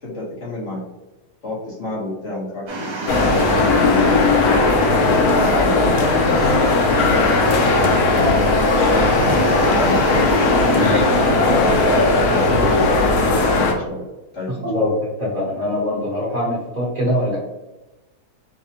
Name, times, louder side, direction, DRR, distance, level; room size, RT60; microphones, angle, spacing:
voice 1, 0.0-0.8 1.4-4.0 4.9-10.0 10.6-11.7 12.3-14.1 14.3-14.9, left 1 dB, 55° left, -6 dB, 1.3 m, -28 dB
sound 1, 2.7-12.8, right 3 dB, 65° right, 1.2 m, -28 dB
sound 2, 3.1-13.7, left 3 dB, 75° left, 1.1 m, -17 dB
voice 2, 10.7-11.1 14.6-14.9 15.2-17.4, left 1 dB, 30° right, -7 dB, 0.9 m, -22 dB
4.9 x 2.1 x 2.8 m, 1.1 s
omnidirectional pair, 1.7 m